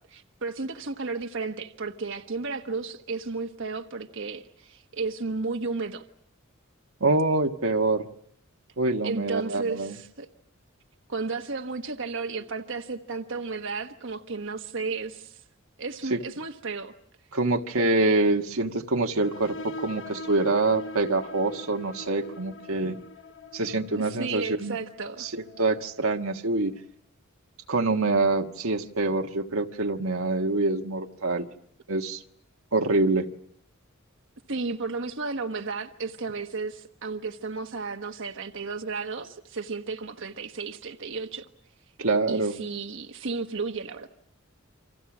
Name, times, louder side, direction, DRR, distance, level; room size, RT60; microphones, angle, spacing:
voice 1, 0.1-6.0 9.0-10.3 11.1-15.4 15.8-16.9 24.0-25.3 34.5-41.4 42.3-44.1, right 4 dB, 65° right, 1.3 m, -33 dB
voice 2, 7.0-8.1 8.8-10.0 16.1-16.2 17.3-23.0 23.5-24.8 25.2-26.7 27.7-31.5 31.9-32.2 32.7-33.3 42.0-42.6, right 2 dB, 85° right, 1.5 m, -25 dB
sound 1, 19.2-26.5, left 1 dB, 65° left, 1.0 m, -42 dB
29.5 x 26.0 x 6.1 m
head